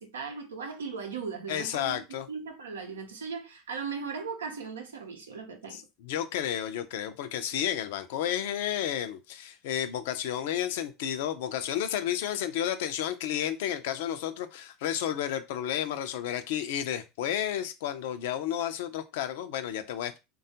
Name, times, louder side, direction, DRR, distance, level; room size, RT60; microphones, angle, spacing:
voice 1, 0.0-2.0 2.3-5.8, right 5 dB, 85° right, 0.6 m, -38 dB
voice 2, 1.5-2.3 5.7-20.2, left 10 dB, 65° left, 0.4 m, -32 dB
3.4 x 2.2 x 2.7 m
hypercardioid pair, 80°, 0 cm